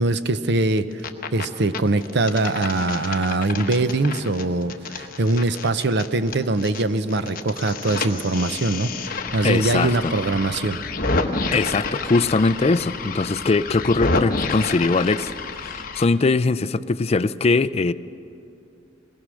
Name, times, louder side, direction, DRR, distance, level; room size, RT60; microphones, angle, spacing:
voice 1, 0.0-10.8, right 2 dB, 60° right, 12 dB, 0.7 m, -22 dB
sound 1, 0.8-1.4 1.7-6.8 7.1-16.0, left 3 dB, 45° left, 1.1 m, -29 dB
voice 2, 9.4-10.1 11.5-15.3 15.6-17.9, left 3 dB, 30° left, 13 dB, 0.4 m, -21 dB
22.0 x 19.0 x 6.3 m, 2.7 s
head